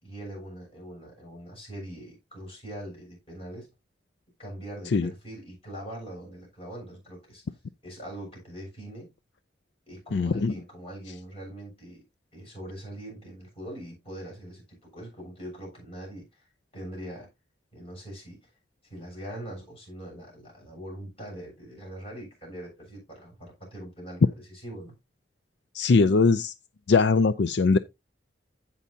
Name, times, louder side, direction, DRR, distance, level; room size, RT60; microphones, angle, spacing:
voice 1, 0.0-3.7 4.4-9.1 9.9-12.0 12.3-17.3 17.7-18.5 18.8-24.9, right 1 dB, 30° left, 7.1 m, -42 dB
voice 2, 10.1-10.5 25.7-26.5 26.9-27.8, left 4 dB, 70° left, 0.5 m, -21 dB
15.5 x 5.6 x 2.8 m
head